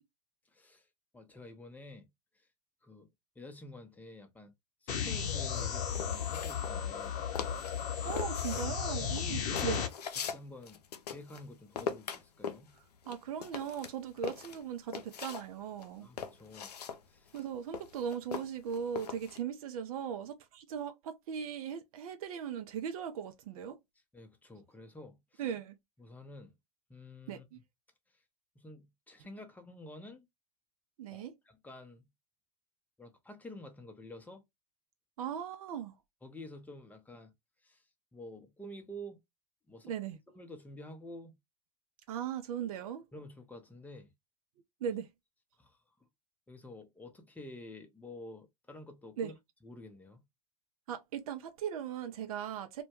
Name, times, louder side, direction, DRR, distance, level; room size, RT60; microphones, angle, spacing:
voice 1, 0.5-0.9 1.1-2.1 2.3-2.5 2.8-3.1 3.4-4.5 4.8-7.1 8.5-8.6 10.2-10.8 11.1-12.7 16.0-16.7 17.1-17.4 24.1-25.4 26.0-26.5 26.9-27.5 28.6-30.3 31.1-32.0 33.0-34.4 36.2-37.3 37.6-37.8 38.1-39.2 39.7-39.9 40.3-41.3 42.1-42.2 43.1-44.1 45.6-45.8 46.5-49.3 49.6-50.2, left 1 dB, 10° left, 0.6 m, -50 dB
sound 1, 4.9-9.9, left 7 dB, 40° left, 0.7 m, -34 dB
sound 2, 5.5-7.1 7.4-7.8 8.1-11.5 11.8-15.5 15.8-19.4, left 7 dB, 85° left, 0.4 m, -41 dB
voice 2, 8.0-9.8 13.1-16.1 17.3-23.8 25.4-25.8 27.3-27.6 31.0-31.3 35.2-35.9 39.8-40.2 42.1-43.0 44.8-45.1 49.2-49.3 50.9-52.8, right 8 dB, 65° right, 0.4 m, -38 dB
2.1 x 2.1 x 2.9 m
hypercardioid pair, 95°, 20 cm